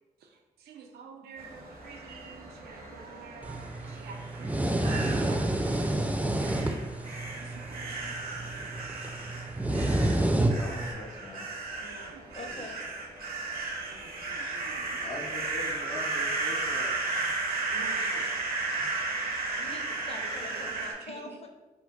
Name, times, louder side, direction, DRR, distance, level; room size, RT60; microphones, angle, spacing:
voice 1, 0.6-5.5 7.4-8.5 11.8-12.5 13.9-15.1 17.7-18.3 20.5-21.2, right 5 dB, 85° right, 3 dB, 0.4 m, -48 dB
sound 1, 1.4-20.9, right 3 dB, 65° right, 0.7 m, -35 dB
sound 2, 3.4-10.9, right 1 dB, 10° right, 0.4 m, -29 dB
voice 2, 10.2-11.5 15.0-17.3 18.7-18.9, left 2 dB, 80° left, -4 dB, 0.8 m, -42 dB
voice 3, 12.3-12.8 18.5-18.6 19.6-21.5, left 3 dB, 40° left, 3 dB, 0.6 m, -44 dB
3.8 x 2.1 x 2.3 m, 1.1 s
supercardioid pair, 45°, 16 cm